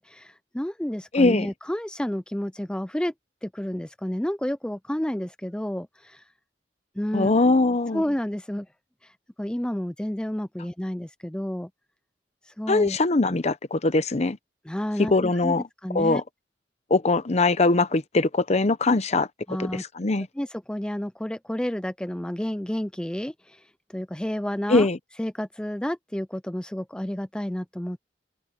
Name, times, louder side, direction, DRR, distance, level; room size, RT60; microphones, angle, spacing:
voice 1, 0.0-3.1 3.4-6.2 7.0-7.3 7.9-8.7 9.0-9.1 9.4-11.7 12.5-13.0 14.7-16.2 19.5-19.8 20.4-24.9 25.2-28.0, equal, 5° left, 0.5 m, -30 dB
voice 2, 1.1-1.5 7.1-8.0 12.7-14.4 15.1-15.6 15.9-16.2 16.9-20.3 24.7-25.0, left 3 dB, 40° left, 0.8 m, -22 dB
head